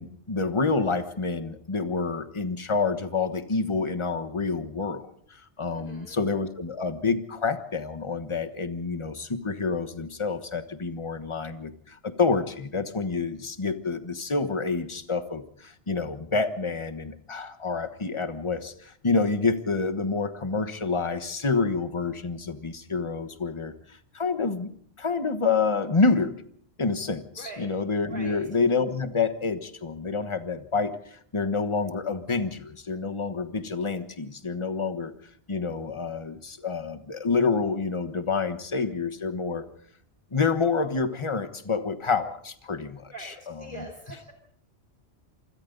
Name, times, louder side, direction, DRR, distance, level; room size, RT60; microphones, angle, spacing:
voice 1, 0.0-5.0 5.3-24.7 25.0-26.3 26.8-35.1 35.5-39.7 40.3-43.9, left 4 dB, 25° left, 9 dB, 1.3 m, -28 dB
voice 2, 5.7-6.2 27.4-27.7 28.1-28.4 43.1-44.3, right 2 dB, 50° right, 3 dB, 3.1 m, -42 dB
27.5 x 25.0 x 4.0 m, 0.63 s
omnidirectional pair, 1.1 m